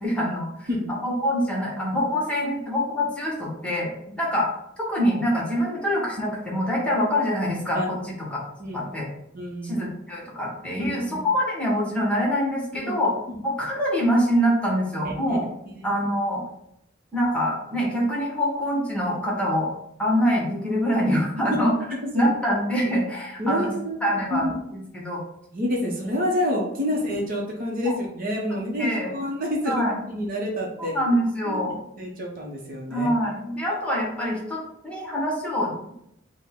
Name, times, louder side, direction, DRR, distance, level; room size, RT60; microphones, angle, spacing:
voice 1, 0.0-0.7 1.0-3.9 4.2-4.5 4.8-8.4 8.7-9.1 9.6-13.1 13.4-15.4 15.8-16.4 17.1-19.7 20.0-21.7 22.1-23.7 24.0-25.2 27.9-28.0 28.8-29.1 29.7-30.0 30.8-31.8 32.9-35.9, equal, 5° left, -4 dB, 1.1 m, -25 dB
voice 2, 9.3-9.8 10.8-11.2 12.8-12.9 13.3-13.4 15.3-15.4 15.7-15.9 21.9-22.3 23.4-24.0 24.3-24.5 25.5-30.9 31.4-33.1, left 1 dB, 45° right, -1 dB, 0.8 m, -28 dB
5.2 x 2.1 x 3.6 m, 0.77 s
head